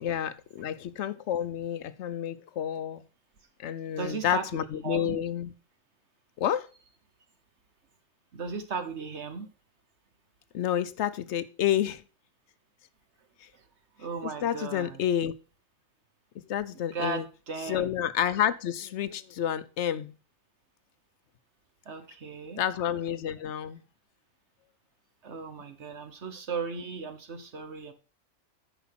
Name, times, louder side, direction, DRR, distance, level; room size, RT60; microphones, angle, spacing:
voice 1, 0.0-3.0 3.6-5.5 6.4-6.7 10.5-12.0 14.4-15.3 16.5-17.2 17.7-20.1 22.6-23.8, left 10 dB, 65° left, 0.9 m, -29 dB
voice 2, 4.0-4.5 4.8-5.2 8.3-9.5 13.5-13.7 14.0-15.0 16.7-17.9 21.8-22.6 25.2-27.9, right 5 dB, 60° right, 1.3 m, -36 dB
9.9 x 5.1 x 5.8 m
omnidirectional pair, 1.4 m